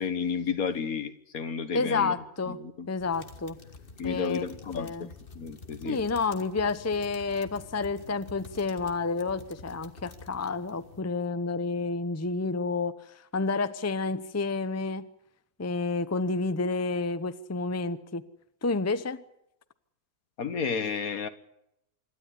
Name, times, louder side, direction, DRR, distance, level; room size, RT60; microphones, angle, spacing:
voice 1, 0.0-2.2 2.5-2.9 4.0-6.0 20.4-21.3, left 6 dB, 70° left, 11 dB, 1.8 m, -32 dB
voice 2, 1.7-2.6 2.9-3.6 4.0-4.4 4.8-5.1 5.8-12.9 13.3-15.1 15.6-18.2 18.6-19.2, left 4 dB, 15° left, 12 dB, 0.7 m, -30 dB
sound 1, 3.0-11.0, left 4 dB, 40° left, 1.7 m, -48 dB
26.0 x 13.0 x 9.9 m, 0.81 s
omnidirectional pair, 1.6 m